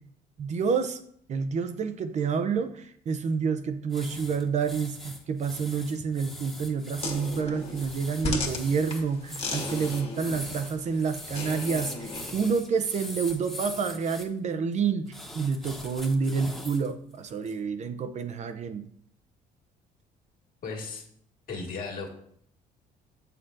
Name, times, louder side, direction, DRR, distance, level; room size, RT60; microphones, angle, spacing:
voice 1, 0.4-1.0 1.3-18.9, right 5 dB, 45° right, 9 dB, 0.5 m, -29 dB
sound 1, 3.9-14.3 15.1-16.9 17.3-17.5, left 1 dB, ahead, 1.0 m, -41 dB
Leaning in Chair, 7.0-12.4, left 3 dB, 35° left, 1.4 m, -36 dB
voice 2, 20.6-21.0 21.5-22.1, left 4 dB, 55° left, 0 dB, 1.8 m, -35 dB
7.2 x 6.6 x 2.6 m, 0.66 s
cardioid pair, 110°, 17 cm